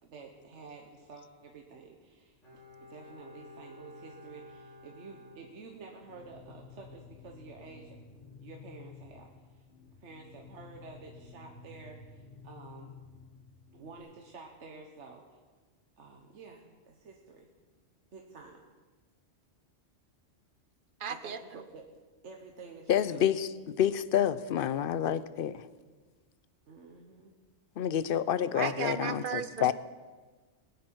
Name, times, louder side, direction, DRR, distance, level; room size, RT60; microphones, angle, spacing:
voice 1, 0.0-2.4 2.8-8.0 8.2-9.6 10.0-12.9 13.7-15.4 16.0-17.5 18.1-18.6 21.1-21.8 22.2-23.3 26.7-27.3, right 4 dB, 70° right, 1 dB, 1.4 m, -50 dB
Bowed string instrument, 2.4-6.2 6.5-6.6, left 2 dB, 85° left, 4.3 m, -53 dB
sound 1, 6.0-14.0, left 5 dB, 45° left, 1.6 m, -52 dB
voice 2, 21.0-21.6 28.5-29.7, right 7 dB, 50° right, 11 dB, 0.8 m, -35 dB
voice 3, 22.9-25.6 27.8-29.7, left 10 dB, 60° left, 16 dB, 0.6 m, -28 dB
21.0 x 9.4 x 4.6 m, 1.4 s
omnidirectional pair, 1.3 m